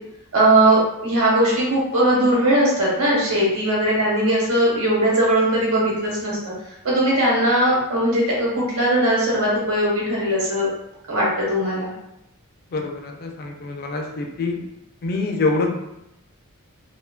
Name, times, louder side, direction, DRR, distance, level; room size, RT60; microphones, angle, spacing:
voice 1, 0.3-6.5 6.8-10.7 11.1-11.9, right 1 dB, 65° right, -5 dB, 1.0 m, -19 dB
voice 2, 12.7-14.6 15.0-15.7, left 3 dB, 45° left, 2 dB, 0.3 m, -25 dB
2.6 x 2.2 x 2.2 m, 0.83 s
head